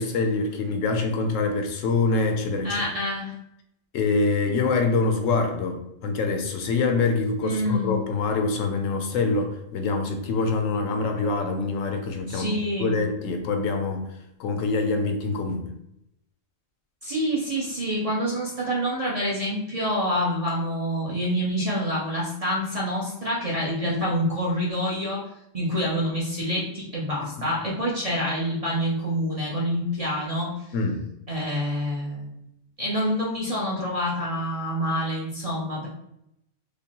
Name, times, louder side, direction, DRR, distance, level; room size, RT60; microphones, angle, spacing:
voice 1, 0.0-2.8 3.9-14.1 14.4-15.7 27.4-27.5 30.7-31.0, left 3 dB, 75° left, 4 dB, 0.9 m, -25 dB
voice 2, 2.6-3.3 7.4-7.9 12.3-12.9 17.0-25.2 25.5-30.5 31.3-32.3 32.8-35.9, equal, 35° right, -6 dB, 0.6 m, -27 dB
5.1 x 2.0 x 2.8 m, 0.80 s
omnidirectional pair, 1.4 m